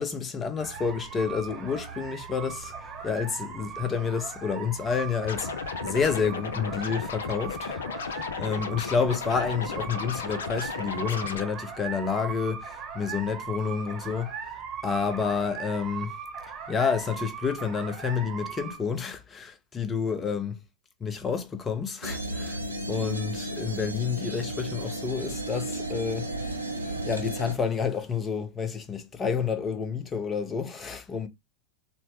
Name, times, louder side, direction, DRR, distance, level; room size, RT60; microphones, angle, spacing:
voice 1, 0.0-2.7 3.0-5.5 5.8-14.3 14.8-16.1 16.7-20.6 21.0-22.6 22.9-26.3 27.0-31.3, left 6 dB, 20° left, 0.6 m, -29 dB
sound 1, 0.6-18.8, right 6 dB, 25° right, 0.9 m, -39 dB
Scratching (performance technique), 5.2-11.4, left 6 dB, 65° left, 0.5 m, -34 dB
sound 2, 22.0-27.5, right 1 dB, 85° right, 0.6 m, -34 dB
4.1 x 2.1 x 3.1 m
figure-of-eight pair, 90°, 0 cm